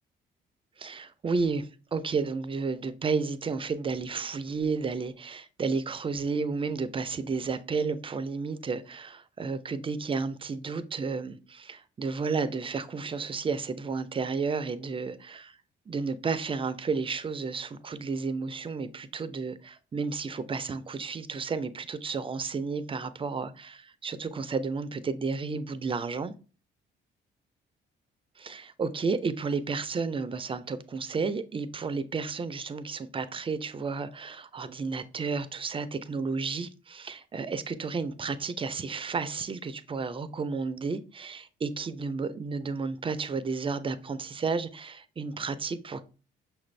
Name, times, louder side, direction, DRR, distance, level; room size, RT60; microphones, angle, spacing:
voice 1, 0.8-15.6 15.9-26.3 28.4-46.0, right 4 dB, 25° right, 0.4 m, -32 dB
5.9 x 2.5 x 3.1 m
cardioid pair, 90°, 20 cm